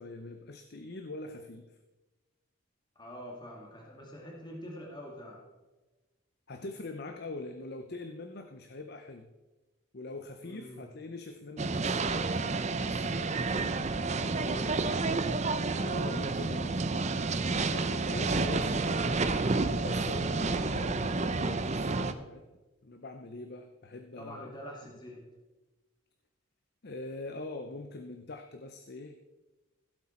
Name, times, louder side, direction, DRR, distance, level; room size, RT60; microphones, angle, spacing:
voice 1, 0.0-1.7 6.5-9.3 9.9-13.3 15.8-16.8 17.6-19.1 19.8-22.4 22.8-24.5 26.8-29.2, left 2 dB, 50° left, 7 dB, 0.7 m, -43 dB
voice 2, 3.0-5.4 10.4-10.8 14.1-15.2 17.9-18.2 20.3-20.5 24.2-25.2, equal, 20° left, -2 dB, 2.0 m, -46 dB
sound 1, 11.6-22.1, right 3 dB, 35° right, 0.6 m, -30 dB
16.0 x 7.9 x 4.4 m, 1.2 s
head